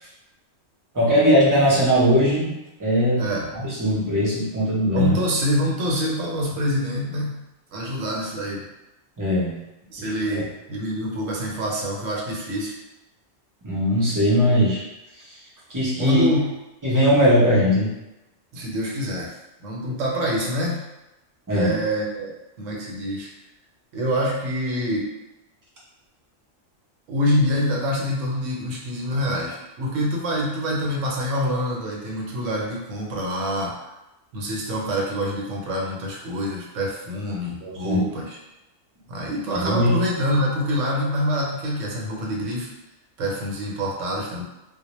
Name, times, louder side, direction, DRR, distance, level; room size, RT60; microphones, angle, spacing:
voice 1, 0.9-3.3 3.5-5.2 9.2-9.6 10.0-10.4 13.6-14.8 15.7-16.2 16.8-17.9 21.5-21.8 37.6-38.0 39.5-40.0, equal, 25° right, -7 dB, 0.5 m, -20 dB
voice 2, 3.2-3.5 4.9-7.4 7.7-8.6 9.9-12.7 16.0-16.5 18.5-19.3 19.6-20.8 21.5-23.3 23.9-25.0 27.1-33.7 34.3-38.4 39.1-42.7 43.2-44.4, equal, 75° right, -2 dB, 1.0 m, -26 dB
2.1 x 2.1 x 2.9 m, 0.96 s
omnidirectional pair, 1.3 m